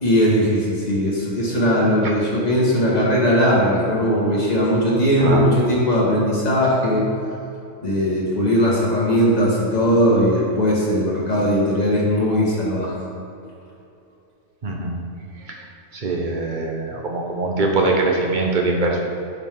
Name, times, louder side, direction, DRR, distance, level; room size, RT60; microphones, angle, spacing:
voice 1, 0.0-7.0 7.8-12.9, equal, 30° left, -5 dB, 2.0 m, -19 dB
voice 2, 5.2-5.5 14.6-15.0 15.5-15.6 15.9-19.0, right 2 dB, 40° right, 0 dB, 1.1 m, -22 dB
10.5 x 5.6 x 3.8 m, 2.7 s
omnidirectional pair, 1.4 m